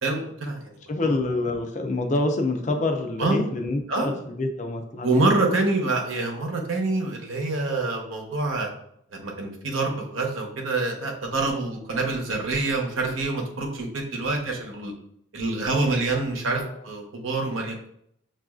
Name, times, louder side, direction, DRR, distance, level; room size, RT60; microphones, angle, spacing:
voice 1, 0.0-0.8 3.2-3.5 3.9-4.1 5.0-8.7 9.1-14.9 15.3-17.8, right 2 dB, 75° right, 1 dB, 0.9 m, -26 dB
voice 2, 0.9-5.1 16.6-16.8, left 2 dB, 35° left, 5 dB, 0.5 m, -27 dB
6.0 x 2.5 x 2.4 m, 0.72 s
head